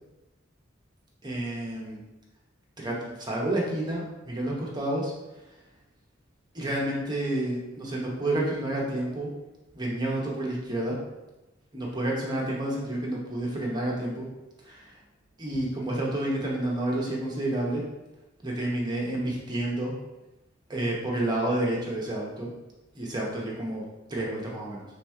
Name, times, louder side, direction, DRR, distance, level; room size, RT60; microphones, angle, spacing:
voice 1, 1.2-2.0 2.8-5.1 6.5-9.3 9.7-11.0 11.7-14.3 14.7-14.9 15.4-17.8 18.4-19.9 20.7-22.5 22.9-23.8 24.1-24.8, right 1 dB, 20° right, -3 dB, 0.9 m, -29 dB
3.5 x 2.9 x 4.6 m, 1.0 s
head